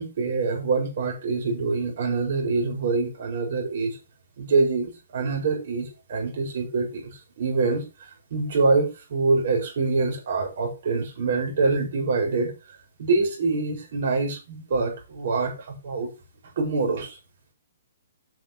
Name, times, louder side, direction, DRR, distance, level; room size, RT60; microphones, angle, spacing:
voice 1, 0.0-4.0 4.4-7.8 8.3-12.5 13.0-16.1 16.6-17.2, right 3 dB, 45° right, 1 dB, 5.2 m, -25 dB
8.4 x 6.3 x 5.4 m, 0.28 s
hypercardioid pair, 175°, 0 cm